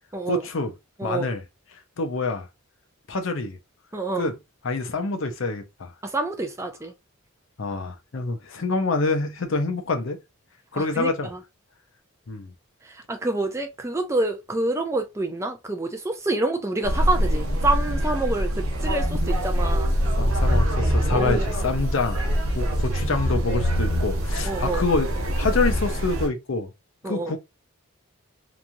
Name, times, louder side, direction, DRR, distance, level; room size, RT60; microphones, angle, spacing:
voice 1, 0.2-0.7 1.0-1.4 2.0-2.5 3.1-3.6 4.2-4.3 4.6-5.9 7.6-10.2 10.7-11.3 12.3-12.5 20.2-22.2 22.5-25.1 25.4-26.7 27.0-27.4, left 3 dB, 65° left, 0.6 m, -26 dB
voice 2, 3.9-4.3 6.0-6.9 10.7-11.4 12.9-19.9 21.1-21.5 24.5-24.8 27.0-27.3, right 2 dB, 15° right, 0.4 m, -27 dB
sound 1, 16.8-26.3, equal, 80° right, 0.7 m, -24 dB
3.0 x 2.4 x 2.5 m
head